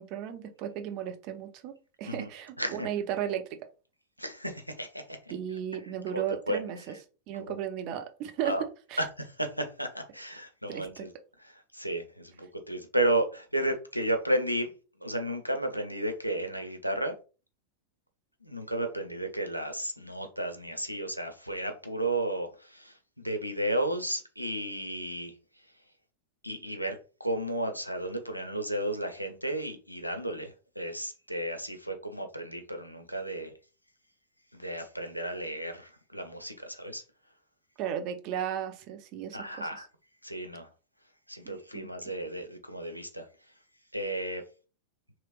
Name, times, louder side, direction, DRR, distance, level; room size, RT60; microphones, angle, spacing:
voice 1, 0.0-1.7 2.0-3.5 5.3-7.0 7.3-8.6 8.9-9.1 10.7-11.1 37.8-39.8 41.5-41.9, right 9 dB, 40° right, 0.6 m, -35 dB
voice 2, 2.6-2.9 4.2-5.0 6.1-6.6 8.4-8.6 9.0-9.1 9.4-11.1 11.7-14.7 15.0-17.1 18.4-22.5 22.7-25.3 26.4-30.5 30.8-33.5 34.5-37.0 39.3-39.9 40.2-40.7 41.3-43.3 43.9-44.4, right 1 dB, 90° left, 0.5 m, -33 dB
3.0 x 3.0 x 2.4 m
figure-of-eight pair, 90°, 0 cm